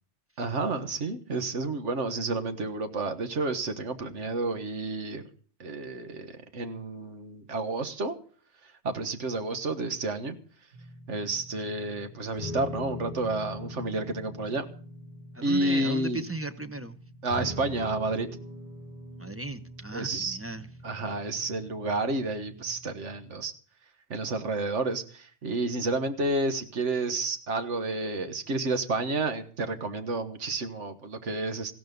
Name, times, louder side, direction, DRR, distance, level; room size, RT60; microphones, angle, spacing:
voice 1, 0.4-5.2 5.6-8.1 8.8-10.4 11.1-14.6 15.4-16.2 17.2-18.3 19.9-20.4 20.8-23.5 24.1-31.7, right 2 dB, 85° right, 8 dB, 1.7 m, -30 dB
sound 1, 10.7-23.3, left 1 dB, 40° right, 3.5 m, -43 dB
voice 2, 15.3-17.0 19.2-20.7, right 2 dB, 15° right, 10 dB, 0.8 m, -36 dB
15.5 x 12.5 x 5.3 m, 0.43 s
omnidirectional pair, 1.2 m